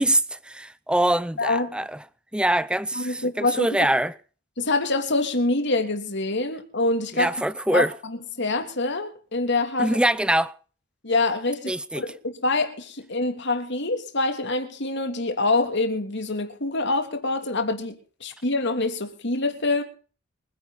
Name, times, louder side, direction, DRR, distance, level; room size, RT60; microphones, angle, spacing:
voice 1, 0.0-2.0 2.3-4.1 7.1-7.9 9.8-10.5 11.7-12.0, right 1 dB, 5° right, 0.6 m, -23 dB
voice 2, 1.4-1.8 2.9-3.9 4.6-7.3 7.7-10.0 11.0-19.8, left 2 dB, 60° left, 3.1 m, -25 dB
25.5 x 10.5 x 4.2 m
head